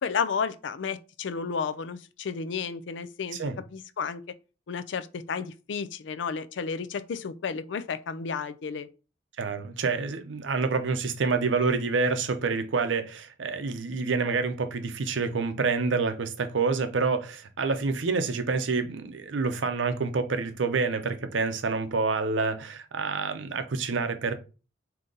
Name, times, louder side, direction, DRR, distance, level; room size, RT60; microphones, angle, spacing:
voice 1, 0.0-3.4 3.7-4.2 4.7-8.9, left 6 dB, 70° left, 0.4 m, -32 dB
voice 2, 9.4-24.3, right 4 dB, 80° right, 0.6 m, -27 dB
3.7 x 2.8 x 3.8 m
head